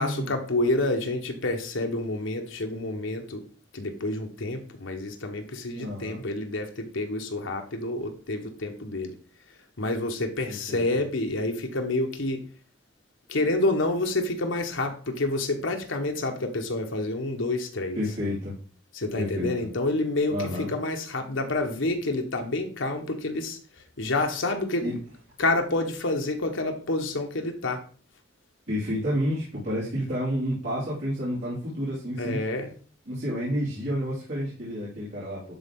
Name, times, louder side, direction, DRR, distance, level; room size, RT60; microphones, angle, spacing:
voice 1, 0.0-3.4 3.7-9.1 9.8-12.4 13.3-18.0 18.9-23.6 24.0-24.9 25.4-27.8 32.2-32.7, left 2 dB, 75° left, 1.2 m, -28 dB
voice 2, 5.7-6.2 10.5-10.8 17.9-18.6 19.1-19.5 20.3-20.7 24.8-25.0 28.7-32.4 33.1-35.4, equal, 65° right, 3.7 m, -30 dB
11.0 x 4.1 x 3.7 m
head